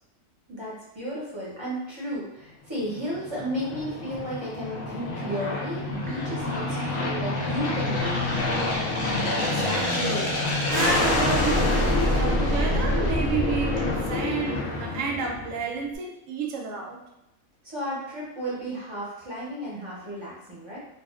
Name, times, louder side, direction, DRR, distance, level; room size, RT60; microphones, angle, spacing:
voice 1, 0.5-8.8 17.6-20.8, equal, 30° right, -8 dB, 0.6 m, -34 dB
Aircraft, 2.9-15.7, left 2 dB, 65° left, 0.4 m, -26 dB
voice 2, 9.4-17.0, right 5 dB, 70° right, 0 dB, 0.9 m, -31 dB
2.4 x 2.3 x 2.4 m, 0.89 s
omnidirectional pair, 1.4 m